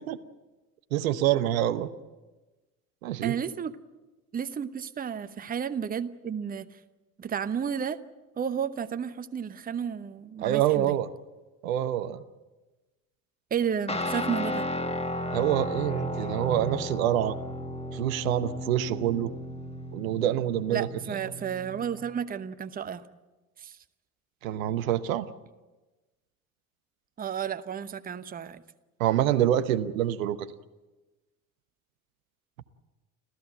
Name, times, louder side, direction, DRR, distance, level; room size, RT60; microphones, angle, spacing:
voice 1, 0.9-1.9 3.0-3.3 10.4-11.1 11.6-12.2 15.3-17.4 17.9-19.3 19.9-20.9 24.4-25.3 29.0-30.5, right 12 dB, 65° right, 11 dB, 1.0 m, -26 dB
voice 2, 3.2-3.8 4.3-6.7 7.2-8.0 8.4-11.0 13.5-14.7 20.7-23.0 23.6-23.7 27.2-28.6, right 7 dB, 20° right, 11 dB, 0.9 m, -32 dB
Guitar, 13.9-22.0, left 1 dB, 15° left, 1.6 m, -34 dB
29.5 x 14.5 x 7.8 m, 1.2 s
figure-of-eight pair, 60°, 44 cm